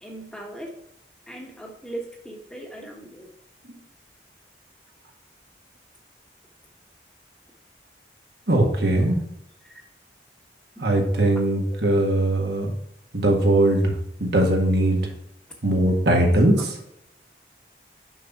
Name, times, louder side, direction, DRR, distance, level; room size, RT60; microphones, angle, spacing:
voice 1, 0.0-0.8 1.3-3.3 9.6-9.8 11.3-11.9 16.6-16.7, right 1 dB, 5° left, 0 dB, 1.2 m, -39 dB
voice 2, 8.5-9.2 10.8-12.7 13.1-15.0 15.6-16.7, right 1 dB, 70° right, 1 dB, 1.7 m, -20 dB
6.4 x 5.8 x 4.7 m, 0.76 s
head